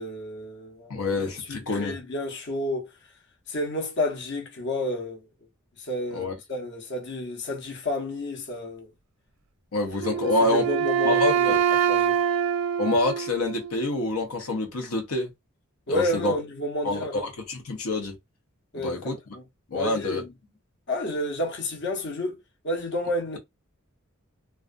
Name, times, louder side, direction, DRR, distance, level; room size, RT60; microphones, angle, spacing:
voice 1, 0.0-0.9 1.5-2.9 3.5-5.2 5.8-8.9 10.2-11.6 11.9-12.2 15.9-17.3 18.7-19.4 19.7-20.3 20.9-22.4 22.6-23.4, left 1 dB, 55° left, 0.8 m, -30 dB
voice 2, 0.9-1.9 6.1-6.3 9.7-10.6 11.0-11.6 12.8-15.3 15.9-16.4 16.8-18.1 18.8-19.2 19.7-20.2, left 2 dB, 90° left, 0.8 m, -27 dB
Wind instrument woodwind instrument, 10.0-13.9, right 8 dB, 70° right, 0.3 m, -25 dB
2.3 x 2.3 x 2.4 m
head